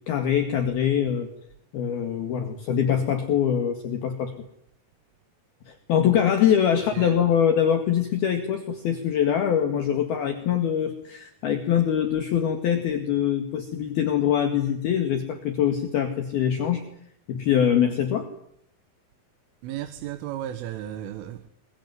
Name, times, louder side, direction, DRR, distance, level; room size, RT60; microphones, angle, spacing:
voice 1, 0.1-1.3 1.7-4.3 5.7-16.8 17.3-18.3, left 9 dB, 60° left, 3.5 m, -23 dB
voice 2, 19.6-21.5, right 11 dB, 85° right, 4.0 m, -34 dB
25.0 x 22.5 x 9.6 m
omnidirectional pair, 5.6 m